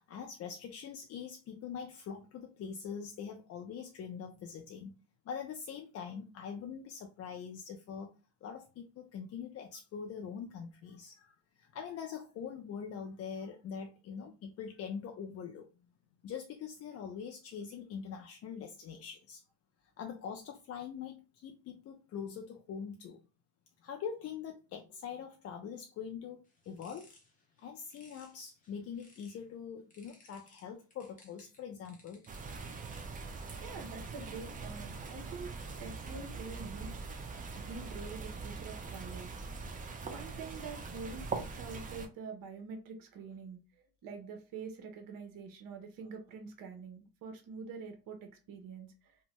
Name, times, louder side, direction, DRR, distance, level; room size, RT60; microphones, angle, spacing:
voice 1, 0.0-15.7 16.2-19.4 20.0-23.2 23.8-26.4 26.7-27.1 27.6-32.2, left 7 dB, 40° left, 0.4 m, -43 dB
sound 1, 26.4-29.5 29.9-33.1, left 2 dB, 20° left, 0.9 m, -63 dB
sound 2, 32.3-42.1, right 4 dB, 20° right, 0.4 m, -42 dB
voice 2, 33.6-35.5 35.8-37.0 37.6-39.3 40.0-43.6 44.0-49.2, right 4 dB, 55° right, 0.9 m, -46 dB
2.6 x 2.1 x 3.0 m
cardioid pair, 105°, 41 cm